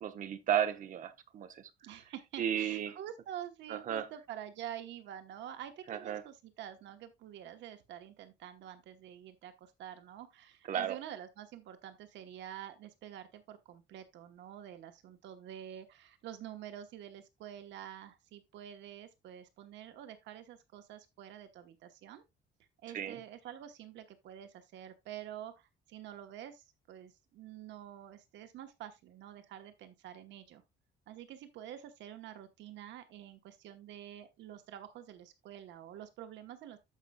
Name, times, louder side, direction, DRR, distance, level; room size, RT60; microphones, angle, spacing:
voice 1, 0.0-1.7 2.4-2.9 3.7-4.1 5.9-6.2 10.7-11.0 22.9-23.2, right 9 dB, 45° right, 0.9 m, -34 dB
voice 2, 1.8-22.2 22.8-30.6 31.1-36.8, right 10 dB, 85° right, 1.1 m, -48 dB
14.0 x 5.3 x 2.3 m
cardioid pair, 175°, 18 cm